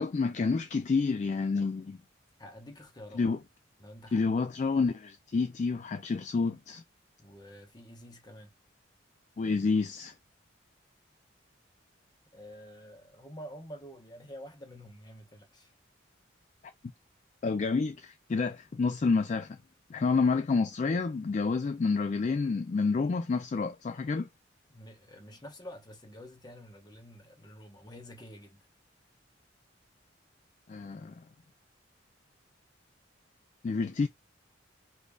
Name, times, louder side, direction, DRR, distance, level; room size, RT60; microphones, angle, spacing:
voice 1, 0.0-2.0 3.2-3.4 4.1-6.8 9.4-10.2 17.4-19.6 19.9-24.3 30.7-31.2 33.6-34.1, left 4 dB, 40° left, 0.3 m, -29 dB
voice 2, 2.4-3.2 3.8-4.3 7.2-8.5 12.3-15.7 24.7-28.7, equal, 20° left, 1.0 m, -48 dB
5.2 x 2.6 x 2.3 m
head